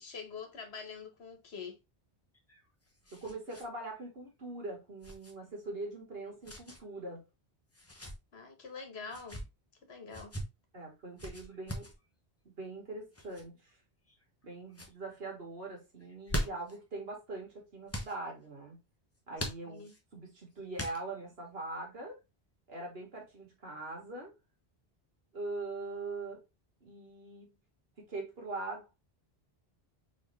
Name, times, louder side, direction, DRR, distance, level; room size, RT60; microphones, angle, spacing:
voice 1, 0.0-1.8 8.3-9.4 9.9-10.3 19.4-19.9, left 5 dB, 80° left, 1.5 m, -45 dB
sound 1, 2.3-3.7 4.0-4.1 5.0-5.3 6.4-6.8 7.7-8.2 9.0-9.5 10.1-10.4 11.2-11.9 13.1-13.4 14.1-14.4 14.7-14.9 16.0-16.8 17.9-18.1 19.4-20.0 20.7-21.3, equal, 15° left, 0.8 m, -40 dB
voice 2, 3.1-7.3 10.7-11.9 12.5-13.6 14.4-18.8 19.3-22.2 22.7-24.3 25.3-26.4 26.8-27.5 28.0-28.9, right 2 dB, 70° right, 1.9 m, -42 dB
4.4 x 3.5 x 3.3 m
omnidirectional pair, 1.0 m